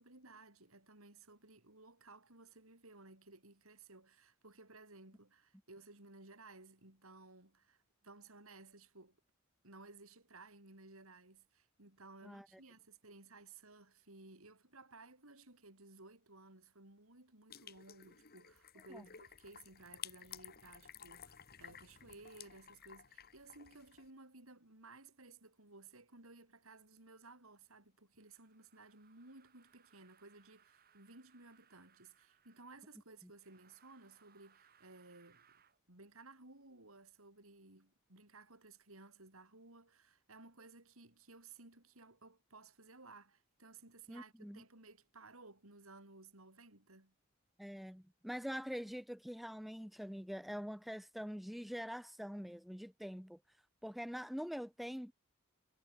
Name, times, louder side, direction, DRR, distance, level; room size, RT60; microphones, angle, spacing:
voice 1, 0.0-9.2 9.6-35.5 35.9-47.1, right 3 dB, 75° right, 5.3 m, -58 dB
sound 1, 17.5-24.1, left 9 dB, 45° left, 2.0 m, -54 dB
sound 2, 28.2-32.8 33.4-35.8, right 8 dB, 45° right, 5.2 m, -70 dB
voice 2, 44.1-44.6 47.6-53.4 53.8-55.1, equal, ahead, 0.3 m, -44 dB
head